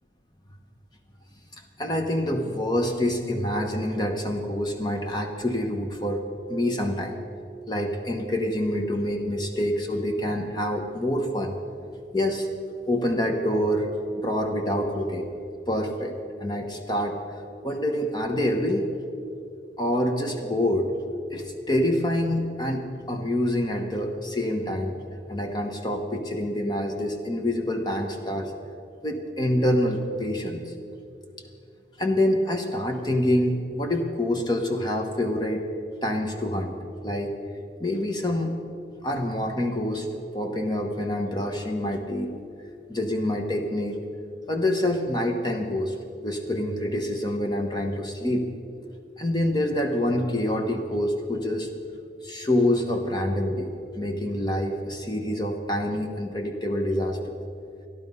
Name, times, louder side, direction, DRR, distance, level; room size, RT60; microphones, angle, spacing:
voice 1, 1.8-6.2 6.5-7.2 7.7-11.5 12.1-12.5 12.9-13.9 14.2-17.2 17.6-18.9 19.8-20.9 21.3-25.0 25.3-28.5 29.0-30.7 32.0-35.7 36.0-36.8 37.0-37.3 37.8-38.5 39.0-40.1 40.3-42.3 42.9-44.0 44.5-46.0 46.2-48.5 49.2-51.7 52.2-57.4, left 1 dB, 25° left, 3 dB, 0.9 m, -26 dB
13.0 x 12.0 x 5.4 m, 2.5 s
head